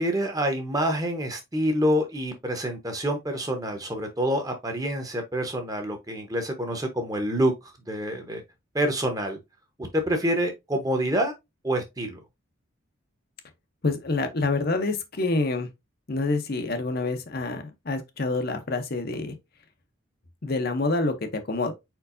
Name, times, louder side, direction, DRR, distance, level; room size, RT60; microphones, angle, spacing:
voice 1, 0.0-7.5 7.9-8.4 8.7-9.4 9.9-11.3 11.6-12.2, equal, 15° right, 0.9 m, -27 dB
voice 2, 13.8-15.7 16.1-19.3 20.4-21.7, left 3 dB, 45° left, 0.7 m, -27 dB
4.6 x 4.5 x 2.6 m
head